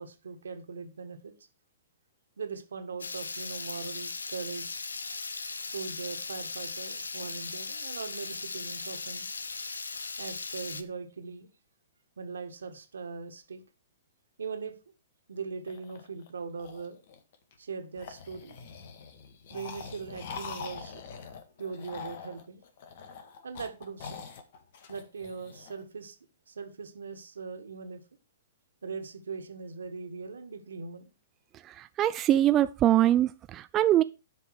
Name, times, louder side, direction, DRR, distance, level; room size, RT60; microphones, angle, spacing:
voice 1, 0.0-1.3 2.4-4.7 5.6-9.3 10.2-11.5 12.2-13.6 14.4-14.8 15.3-17.0 17.6-18.6 19.5-21.0 21.6-22.6 23.4-24.2 24.9-26.2 26.5-28.0 28.8-31.1, right 5 dB, 80° right, 1.7 m, -40 dB
Water tap faucet / Liquid, 3.0-10.8, left 4 dB, 90° left, 0.9 m, -38 dB
Zombie Voice, 15.7-17.5 17.9-25.8, left 5 dB, 55° left, 1.7 m, -44 dB
voice 2, 31.7-34.0, right 12 dB, 25° right, 0.4 m, -23 dB
11.0 x 5.4 x 4.7 m
hypercardioid pair, 120°, 0 cm